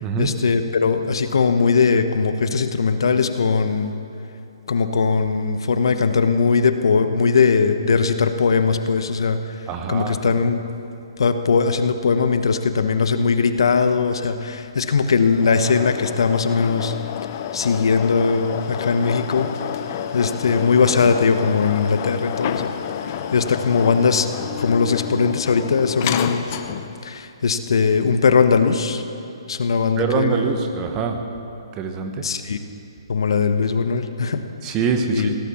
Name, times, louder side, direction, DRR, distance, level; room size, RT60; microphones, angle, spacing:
voice 1, 0.2-3.9 4.7-10.6 11.2-16.9 17.5-19.5 20.1-22.7 23.3-26.5 27.0-29.0 29.5-30.6 32.2-32.6 33.1-34.4 35.1-35.3, left 5 dB, 70° left, 9 dB, 1.1 m, -19 dB
voice 2, 9.7-10.2 30.0-31.2 31.7-32.1 34.6-35.4, right 5 dB, 20° right, 5 dB, 1.1 m, -24 dB
sound 1, 15.3-27.0, left 9 dB, 35° left, 0.8 m, -30 dB
17.0 x 11.5 x 7.1 m, 2.7 s
hypercardioid pair, 155°, 3 cm